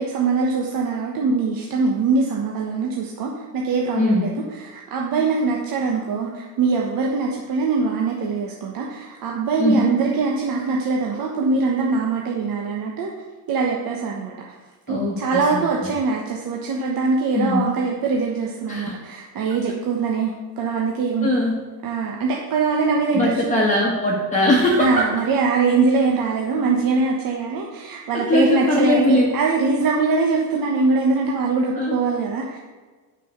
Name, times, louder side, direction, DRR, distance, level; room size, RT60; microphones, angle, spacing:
voice 1, 0.0-4.3 4.6-13.1 13.5-14.4 14.9-21.3 21.8-23.6 24.8-32.6, right 4 dB, 50° right, -1 dB, 1.2 m, -22 dB
voice 2, 4.0-4.3 9.6-9.9 14.9-15.9 17.3-17.7 18.7-19.0 21.2-21.6 23.1-25.1 28.1-29.3 31.7-32.0, left 1 dB, 15° left, -3 dB, 1.4 m, -20 dB
6.5 x 5.9 x 6.7 m, 1.3 s
supercardioid pair, 115°, 46 cm